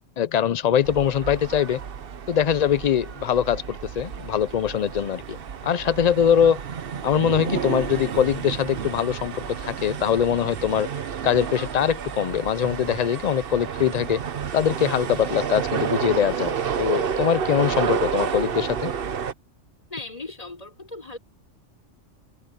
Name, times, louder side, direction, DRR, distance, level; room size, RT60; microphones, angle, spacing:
voice 1, 0.2-1.8 2.3-5.4 5.6-6.6 7.0-10.9 11.2-14.2 14.5-18.9, left 9 dB, 55° left, 0.4 m, -22 dB
sound 1, 0.8-19.3, right 7 dB, 50° right, 1.0 m, -30 dB
voice 2, 19.9-21.2, left 2 dB, 30° left, 5.2 m, -37 dB
omnidirectional pair, 1.3 m